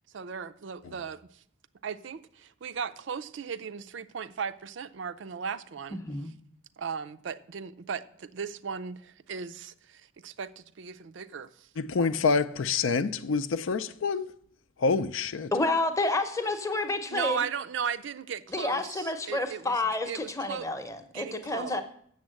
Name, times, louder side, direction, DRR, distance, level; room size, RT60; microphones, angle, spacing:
voice 1, 0.1-1.4 1.8-6.3 6.8-11.7 15.5-15.8 16.4-16.8 17.1-20.7 21.1-21.8, right 6 dB, 65° right, 0.4 m, -37 dB
voice 2, 5.9-6.3 15.5-17.4 18.5-21.8, left 2 dB, 15° left, 0.8 m, -29 dB
voice 3, 11.8-14.3 14.8-15.5, left 4 dB, 75° left, 0.5 m, -27 dB
7.2 x 7.1 x 7.6 m
head